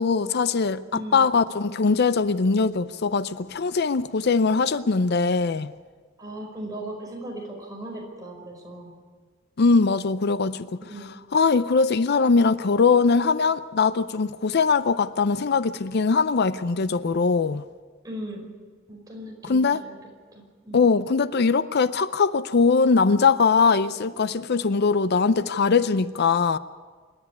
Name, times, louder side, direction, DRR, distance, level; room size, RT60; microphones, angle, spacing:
voice 1, 0.0-5.7 9.6-17.6 19.4-19.8 20.7-26.6, left 4 dB, 55° left, 0.5 m, -21 dB
voice 2, 0.9-1.2 6.2-8.9 10.9-11.1 18.0-18.5 18.9-19.9 20.3-20.9, right 1 dB, 20° right, 5.1 m, -37 dB
26.5 x 11.0 x 9.7 m
head